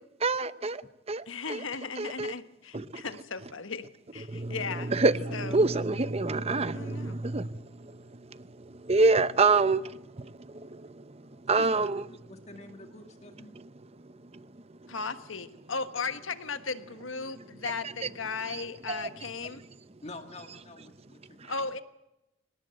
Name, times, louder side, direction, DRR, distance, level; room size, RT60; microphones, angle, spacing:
voice 1, 0.2-1.6 2.0-2.3 2.7-3.0 4.3-12.0 13.5-13.7 14.0-14.5 14.8-14.9 18.5-18.6 18.9-19.1 21.4-21.5, right 3 dB, 30° right, 0.8 m, -28 dB
voice 2, 1.3-4.9 5.3-5.6 6.7-7.2 14.9-19.6 21.5-21.8, left 4 dB, 80° left, 1.4 m, -36 dB
voice 3, 11.6-13.5 20.0-21.5, left 2 dB, 35° left, 1.9 m, -47 dB
25.5 x 18.5 x 7.8 m
head